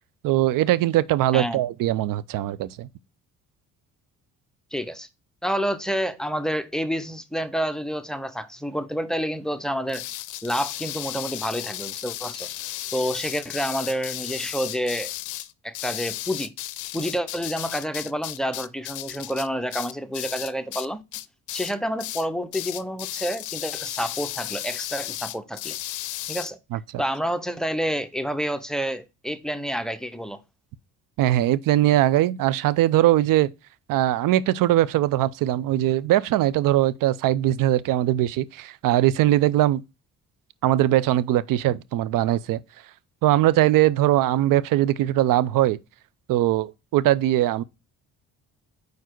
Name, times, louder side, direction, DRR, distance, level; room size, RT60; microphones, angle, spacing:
voice 1, 0.2-2.9 26.7-27.0 31.2-33.5 33.9-39.8 40.6-42.6 43.2-45.8 46.3-47.6, right 14 dB, 65° right, 0.6 m, -21 dB
voice 2, 4.7-5.1 5.4-10.0 10.4-12.5 12.9-15.1 15.6-16.5 16.9-21.0 21.5-25.8 26.3-26.6 27.0-30.4, equal, ahead, 0.7 m, -28 dB
sound 1, 9.9-20.9 21.1-21.7 22.0-22.3 22.5-26.5, left 14 dB, 60° left, 0.5 m, -34 dB
4.7 x 4.6 x 4.5 m
supercardioid pair, 80°, 35 cm